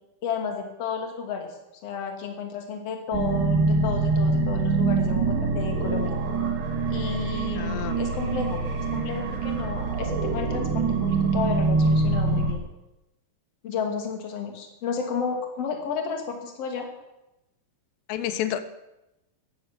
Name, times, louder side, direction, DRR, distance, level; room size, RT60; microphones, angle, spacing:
voice 1, 0.2-1.5 1.8-6.1 6.9-8.6 8.9-12.6 13.6-16.9, left 6 dB, 40° left, 3 dB, 3.0 m, -32 dB
sound 1, 3.1-12.5, right 4 dB, 75° right, 4.3 m, -25 dB
voice 2, 7.6-8.0 18.1-18.6, left 11 dB, 90° left, 12 dB, 3.0 m, -29 dB
15.5 x 11.5 x 7.6 m, 0.93 s
omnidirectional pair, 4.8 m